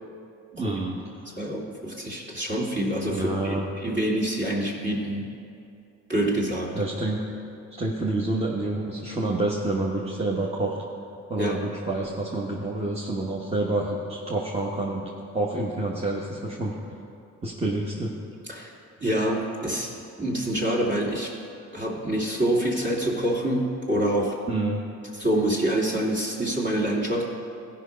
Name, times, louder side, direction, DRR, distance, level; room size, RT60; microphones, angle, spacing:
voice 1, 0.5-1.0 1.3-1.4 3.1-3.7 6.7-7.2 7.8-10.8 11.3-16.7 17.4-18.1 24.5-24.8, right 2 dB, 20° right, -4 dB, 1.2 m, -28 dB
voice 2, 1.4-5.3 6.1-6.7 11.4-11.6 18.5-18.7 19.0-19.9 20.2-21.3 21.7-24.4 25.2-27.3, right 1 dB, 35° right, -3 dB, 2.5 m, -26 dB
15.5 x 5.6 x 5.1 m, 2.5 s
cardioid pair, 90°, 30 cm